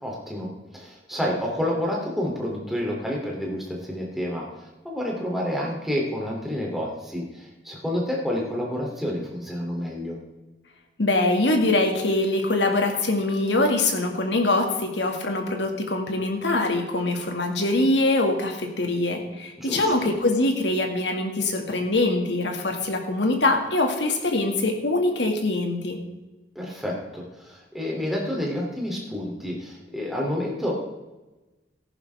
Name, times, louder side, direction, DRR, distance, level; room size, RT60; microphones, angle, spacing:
voice 1, 0.0-10.2 19.6-20.1 26.5-30.7, left 1 dB, ahead, -2 dB, 2.9 m, -29 dB
voice 2, 11.0-26.0, left 2 dB, 80° left, 3 dB, 2.1 m, -23 dB
14.0 x 11.0 x 3.5 m, 1.1 s
head